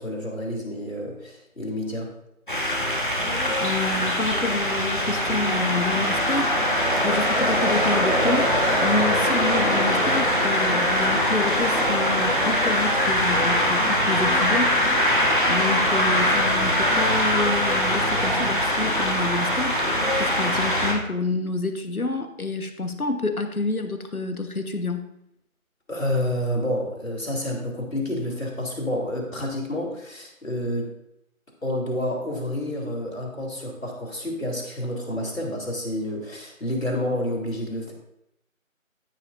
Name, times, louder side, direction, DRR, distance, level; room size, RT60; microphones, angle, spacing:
voice 1, 0.0-2.1 25.9-30.9 31.6-37.9, left 1 dB, 70° left, -1 dB, 3.3 m, -29 dB
sound 1, 2.5-20.9, equal, 35° left, 1.4 m, -22 dB
voice 2, 3.6-6.7 7.0-14.7 15.5-19.8 20.1-25.1, left 3 dB, 90° left, 7 dB, 1.4 m, -28 dB
14.5 x 6.1 x 2.6 m, 0.81 s
figure-of-eight pair, 175°, 42 cm